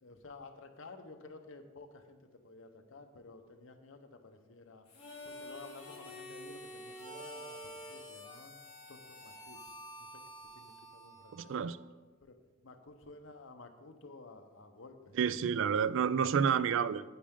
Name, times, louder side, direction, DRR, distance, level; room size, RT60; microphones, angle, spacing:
voice 1, 0.0-4.8 5.2-8.5 8.9-9.7 10.0-10.2 10.5-11.6 12.2-12.4 12.6-15.7, left 3 dB, 70° left, 0.9 m, -53 dB
Harmonica, 4.9-11.8, equal, 25° left, 3.4 m, -48 dB
voice 2, 11.3-11.8 15.2-17.0, right 7 dB, 65° right, 0.3 m, -29 dB
10.0 x 8.7 x 3.7 m
head